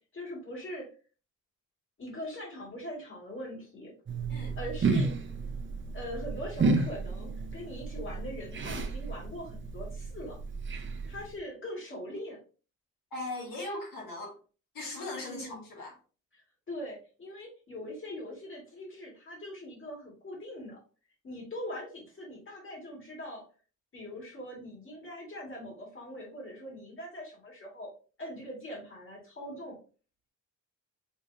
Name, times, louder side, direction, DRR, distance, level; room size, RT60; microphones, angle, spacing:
voice 1, 0.1-0.9 2.0-3.9 4.6-5.1 5.9-10.4 11.1-12.4 15.3-15.7 16.3-16.4 16.7-20.8 21.2-23.4 23.9-27.9 28.2-29.8, left 1 dB, 35° left, 2.0 m, -41 dB
sound 1, 4.1-11.4, right 4 dB, 35° right, 0.6 m, -32 dB
voice 2, 13.1-14.3 14.7-15.9, left 2 dB, 80° left, 1.9 m, -38 dB
5.4 x 3.3 x 2.7 m
wide cardioid pair, 145°, 33 cm